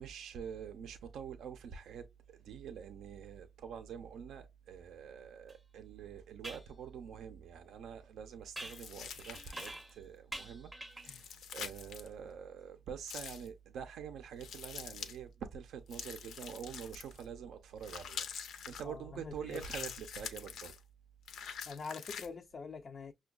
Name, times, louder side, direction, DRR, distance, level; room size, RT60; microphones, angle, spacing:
voice 1, 0.0-20.7, right 7 dB, 90° right, 0.4 m, -46 dB
sound 1, 5.5-5.6 6.4-6.7 8.6-10.0 10.3-11.2, right 1 dB, 10° right, 0.5 m, -46 dB
sound 2, 8.6-9.9 11.0-12.1 13.1-13.5 14.4-15.2 15.9-17.2 17.8-18.8 19.5-20.8 21.3-22.3, left 7 dB, 80° left, 0.6 m, -45 dB
voice 2, 18.8-19.6 21.7-23.1, left 5 dB, 40° left, 0.3 m, -45 dB
5.9 x 2.2 x 2.2 m
wide cardioid pair, 150°, 0 cm